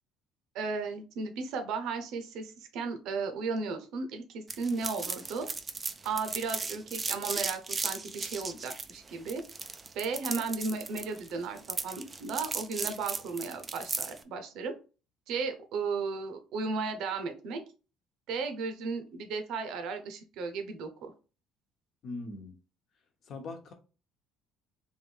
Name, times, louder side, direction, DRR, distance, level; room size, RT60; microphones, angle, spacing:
voice 1, 0.5-5.5 6.0-9.4 9.9-14.7 15.3-17.6 18.3-21.1, right 4 dB, 70° right, 0.9 m, -35 dB
sound 1, 4.5-14.2, right 4 dB, 20° right, 0.4 m, -36 dB
voice 2, 22.0-22.5 23.3-23.7, left 3 dB, 50° left, 1.0 m, -40 dB
3.6 x 2.6 x 4.5 m
cardioid pair, 135°, 0 cm